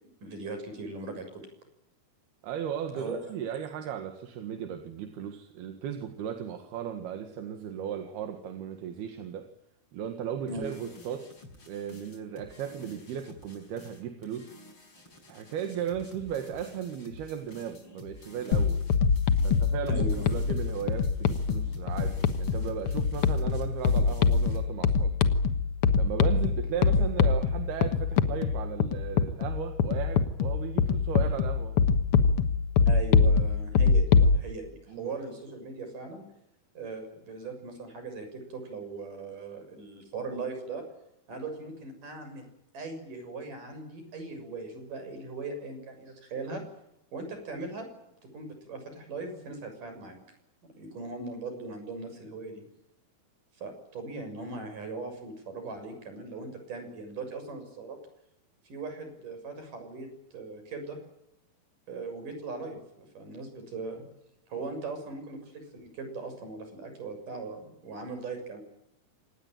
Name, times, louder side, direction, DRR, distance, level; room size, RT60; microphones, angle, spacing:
voice 1, 0.2-1.4 2.9-3.2 10.5-10.7 19.9-20.4 32.8-36.2 36.7-40.8 41.3-46.6 47.1-47.8 48.3-50.3 50.8-52.6 53.6-58.0 58.6-61.0 61.9-64.0 64.5-68.6, right 3 dB, 55° right, 6 dB, 8.3 m, -39 dB
voice 2, 2.4-9.4 9.9-11.3 11.7-14.5 15.3-18.8 19.4-25.1 25.9-31.8 34.9-35.1, right 9 dB, 80° right, 6 dB, 3.7 m, -36 dB
sound 1, 10.5-24.7, left 2 dB, 35° left, 5.4 m, -50 dB
sound 2, 18.5-34.4, left 5 dB, 65° left, 1.4 m, -24 dB
25.5 x 19.5 x 9.1 m, 0.82 s
omnidirectional pair, 4.5 m